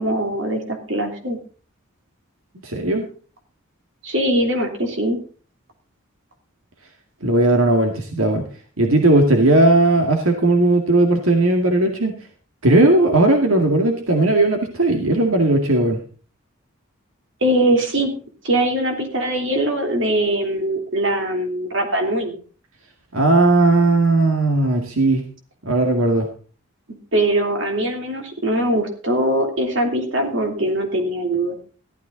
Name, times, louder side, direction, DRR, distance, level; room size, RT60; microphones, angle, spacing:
voice 1, 0.0-1.4 4.0-5.2 17.4-18.1 18.4-22.4 27.1-31.7, right 1 dB, 60° right, 3 dB, 3.2 m, -21 dB
voice 2, 2.6-3.1 7.2-8.5 8.8-12.1 12.6-16.0 23.1-25.2 25.7-26.3, right 2 dB, 80° right, 3 dB, 2.1 m, -17 dB
15.0 x 12.5 x 4.0 m, 0.39 s
head